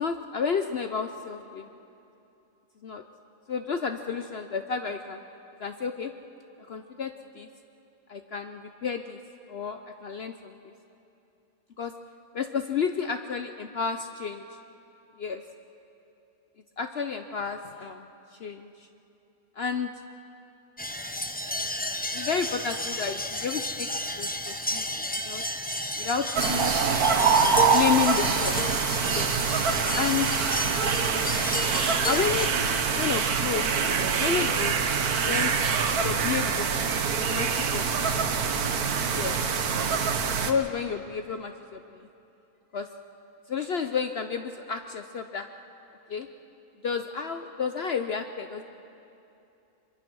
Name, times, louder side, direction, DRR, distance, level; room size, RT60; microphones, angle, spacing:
voice 1, 0.0-1.7 2.8-3.0 3.5-5.2 5.6-6.1 6.7-7.5 8.1-9.2 9.5-10.7 11.8-11.9 12.3-14.4 15.2-15.4 16.8-18.9 19.6-19.9 22.1-25.4 26.0-26.7 27.4-28.6 29.1-29.3 29.9-30.6 32.1-32.5 33.0-33.7 34.1-34.8 35.3-35.5 36.0-36.7 37.3-38.2 38.9-39.4 40.0-42.1 42.7-42.9 43.5-45.5 46.1-46.3 46.8-48.6, left 6 dB, 55° left, 7 dB, 0.8 m, -31 dB
sound 1, 20.8-32.5, left 1 dB, 10° left, 0.5 m, -32 dB
sound 2, 26.4-40.5, right 6 dB, 85° right, 1.6 m, -25 dB
24.0 x 22.5 x 6.2 m, 2.8 s
omnidirectional pair, 1.5 m